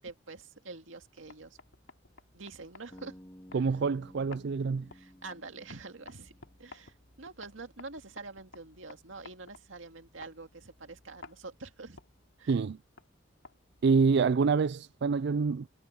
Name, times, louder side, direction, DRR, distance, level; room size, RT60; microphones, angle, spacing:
voice 1, 0.0-1.6 2.3-3.2 3.5-3.7 4.9-6.3 6.6-12.0 12.4-12.5, right 3 dB, 85° right, 2.1 m, -46 dB
sound 1, 1.0-14.8, left 3 dB, 85° left, 2.9 m, -56 dB
Bass guitar, 2.9-7.0, equal, 15° left, 2.3 m, -54 dB
voice 2, 3.5-4.9 12.5-12.8 13.8-15.7, right 5 dB, 60° right, 0.4 m, -26 dB
head